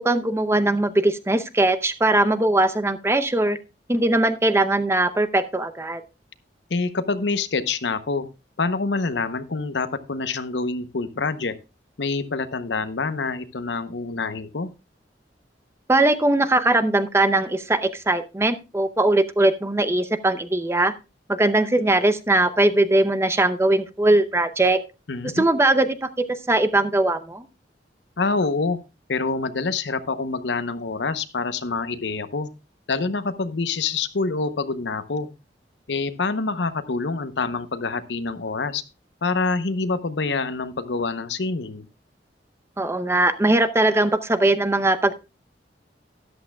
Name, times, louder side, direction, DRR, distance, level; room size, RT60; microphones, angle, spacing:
voice 1, 0.0-3.6 3.9-6.0 15.9-20.9 21.3-24.8 25.3-27.5 42.8-45.1, right 2 dB, 15° right, 10 dB, 0.7 m, -20 dB
voice 2, 6.7-8.3 8.6-11.5 12.0-14.7 25.1-25.5 28.2-28.8 29.1-32.5 32.9-35.3 35.9-38.8 39.2-41.9, left 4 dB, 90° left, 12 dB, 0.8 m, -26 dB
13.0 x 11.0 x 2.3 m, 0.27 s
head